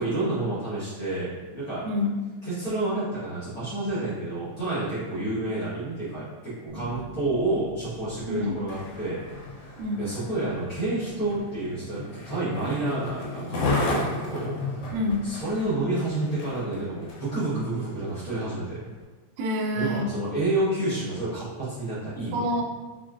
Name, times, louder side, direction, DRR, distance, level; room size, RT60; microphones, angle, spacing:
voice 1, 0.0-1.8 2.4-14.9 15.2-18.8 19.7-22.6, right 2 dB, 60° left, -10 dB, 0.9 m, -29 dB
voice 2, 1.8-2.2 8.3-8.6 9.8-10.0 14.9-15.3 19.4-20.1 22.3-22.6, left 1 dB, 85° right, 1 dB, 2.0 m, -27 dB
sound 1, 6.7-10.1, right 1 dB, 65° right, 2.1 m, -46 dB
Skateboard, 8.5-17.4 18.0-18.1, left 2 dB, 80° left, 2.3 m, -33 dB
6.2 x 2.2 x 2.4 m, 1.3 s
omnidirectional pair, 3.5 m